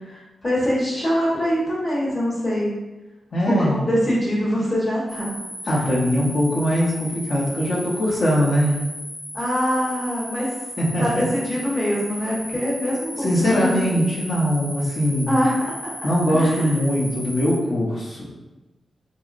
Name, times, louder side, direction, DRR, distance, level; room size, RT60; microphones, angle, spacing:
voice 1, 0.1-2.7 3.5-5.3 9.3-10.5 11.0-14.0 15.3-15.9 16.3-16.7, equal, 25° left, -6 dB, 0.9 m, -23 dB
voice 2, 3.3-3.8 5.6-8.8 10.8-11.2 13.2-15.3 16.0-18.2, equal, 50° left, -4 dB, 0.7 m, -21 dB
sound 1, 5.1-17.6, equal, 85° left, 0.9 m, -36 dB
3.8 x 2.0 x 2.4 m, 1.1 s
wide cardioid pair, 160°, 0 cm